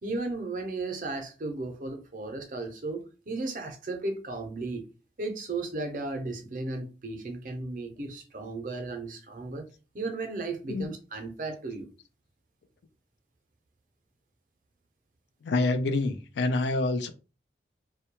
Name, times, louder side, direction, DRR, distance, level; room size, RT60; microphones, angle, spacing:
voice 1, 0.0-4.8 5.2-9.7 9.9-11.9, right 3 dB, 50° right, 0.5 m, -35 dB
voice 2, 15.4-17.1, left 2 dB, 80° left, 0.4 m, -27 dB
2.2 x 2.1 x 2.9 m
head